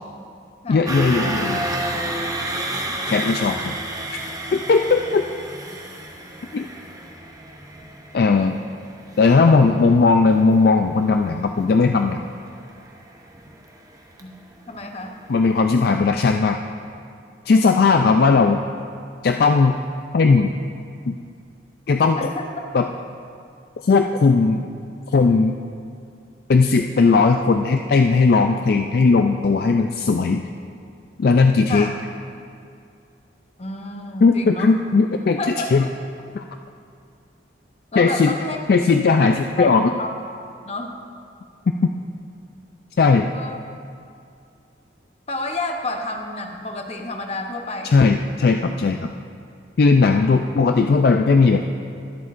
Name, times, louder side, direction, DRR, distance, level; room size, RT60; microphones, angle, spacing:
voice 1, 0.7-1.7 3.1-4.2 4.5-5.2 6.5-6.7 8.1-8.6 9.2-12.2 15.3-16.6 17.5-18.6 19.2-19.8 20.1-20.5 21.1-21.2 21.9-22.3 22.7-22.9 23.8-24.6 25.1-25.6 26.5-30.4 31.2-31.9 34.2-35.9 36.3-36.4 38.0-38.3 38.7-39.9 43.0-43.3 47.8-49.1 49.8-51.7, left 4 dB, 55° left, 5 dB, 0.3 m, -17 dB
sound 1, 0.9-14.9 15.2-15.5 15.8-15.9, right 1 dB, 20° right, 0.7 m, -31 dB
voice 2, 14.7-15.2 22.2-22.5 31.7-31.9 33.6-34.8 35.4-35.9 37.9-38.6 39.2-39.3 39.6-39.7 40.0-40.2 40.6-40.9 43.3-43.6 45.3-48.0, left 2 dB, 35° left, 3 dB, 0.8 m, -29 dB
21.5 x 8.1 x 2.5 m, 2.5 s
head